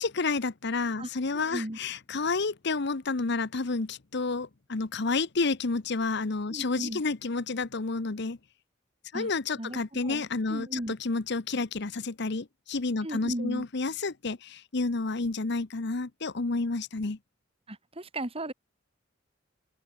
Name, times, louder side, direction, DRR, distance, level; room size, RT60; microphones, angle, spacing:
voice 1, 0.0-8.4 9.1-17.2, left 3 dB, 60° left, 0.9 m, -30 dB
voice 2, 1.0-1.8 6.5-7.0 9.1-9.3 9.6-10.9 13.0-13.7 17.7-18.5, right 1 dB, 30° right, 4.1 m, -36 dB
open air
head